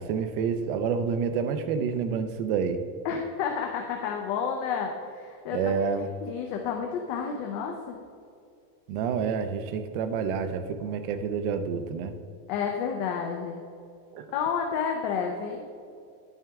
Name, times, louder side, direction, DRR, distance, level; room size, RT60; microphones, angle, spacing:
voice 1, 0.0-2.8 5.5-6.1 8.9-12.2 14.1-14.2, right 6 dB, 35° right, 8 dB, 0.5 m, -28 dB
voice 2, 3.0-8.0 12.5-13.6 14.3-15.7, left 6 dB, 35° left, 2 dB, 0.6 m, -31 dB
9.8 x 9.0 x 3.5 m, 2.4 s
supercardioid pair, 175°, 48 cm